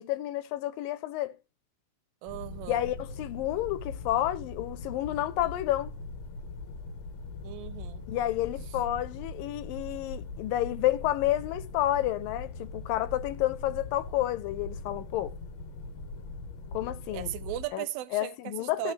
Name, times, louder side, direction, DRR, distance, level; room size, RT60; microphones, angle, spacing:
voice 1, 0.0-1.3 2.7-5.9 8.1-15.4 16.7-17.3 17.7-17.8 18.1-18.9, left 14 dB, 80° left, 2.5 m, -30 dB
voice 2, 2.2-2.9 7.4-8.0 17.1-18.9, right 14 dB, 90° right, 2.5 m, -37 dB
sound 1, 2.3-17.7, left 3 dB, 60° left, 2.0 m, -41 dB
15.5 x 8.5 x 3.3 m
omnidirectional pair, 4.0 m